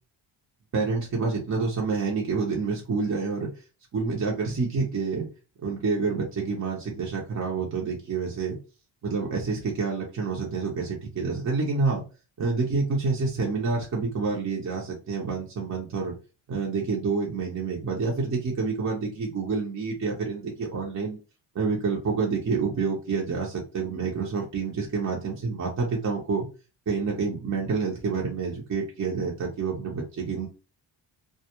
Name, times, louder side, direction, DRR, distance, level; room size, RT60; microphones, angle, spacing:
voice 1, 0.7-3.5 3.9-5.3 5.6-8.6 9.0-12.0 12.4-16.1 16.5-21.2 21.5-26.5 26.9-30.5, right 4 dB, 35° right, -2 dB, 0.7 m, -28 dB
2.2 x 2.0 x 2.8 m, 0.33 s
cardioid pair, 80°, 50 cm